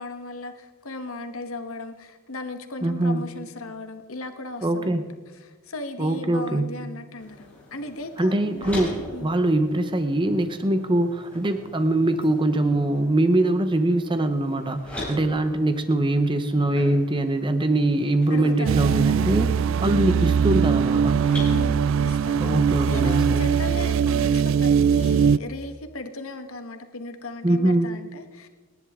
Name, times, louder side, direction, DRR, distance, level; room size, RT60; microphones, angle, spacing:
voice 1, 0.0-5.1 5.4-8.8 9.1-9.3 18.3-18.7 21.5-22.6 22.9-28.5, left 2 dB, 65° left, 7 dB, 1.3 m, -37 dB
voice 2, 2.8-3.2 4.6-5.2 6.0-6.7 8.2-8.9 9.2-21.2 22.4-23.4 27.4-27.9, right 1 dB, 20° right, 9 dB, 0.8 m, -23 dB
sound 1, 7.2-25.3, left 1 dB, 5° left, 5.9 m, -42 dB
sound 2, 18.7-25.4, right 6 dB, 60° right, 0.3 m, -21 dB
30.0 x 10.5 x 3.7 m, 1.4 s
head